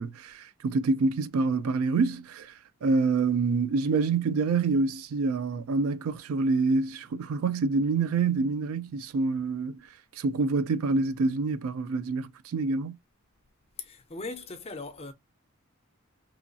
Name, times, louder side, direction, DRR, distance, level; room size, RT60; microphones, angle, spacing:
voice 1, 0.0-9.9 10.1-13.0, right 4 dB, 75° right, 0.3 m, -27 dB
voice 2, 13.8-15.1, left 3 dB, 25° left, 0.5 m, -39 dB
3.0 x 2.3 x 2.5 m
head